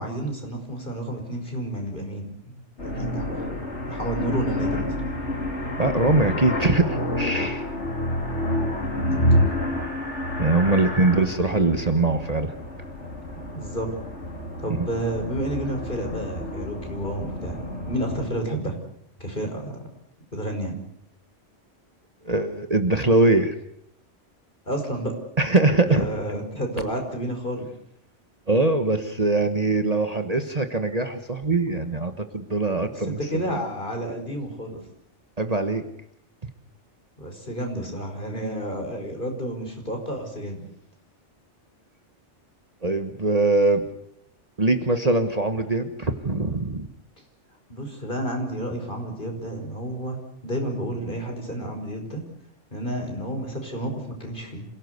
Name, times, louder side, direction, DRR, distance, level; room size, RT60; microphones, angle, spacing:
voice 1, 0.0-3.5 3.9-5.0 8.9-9.3 11.1-11.2 13.5-13.9 14.6-17.6 17.9-18.8 19.2-19.8 20.3-20.8 24.7-25.2 25.8-27.7 33.0-34.8 37.2-40.6 47.7-50.2 50.4-52.2 52.7-54.7, right 1 dB, 45° left, 3 dB, 5.5 m, -30 dB
sound 1, 2.8-18.2, left 1 dB, 70° left, 4.5 m, -28 dB
voice 2, 5.8-7.7 10.4-12.5 14.7-14.9 22.2-23.5 25.4-26.1 28.5-33.5 35.4-35.8 42.8-43.9 44.6-46.9, right 2 dB, 35° right, 7 dB, 1.5 m, -22 dB
27.0 x 17.5 x 8.2 m, 0.72 s
omnidirectional pair, 1.2 m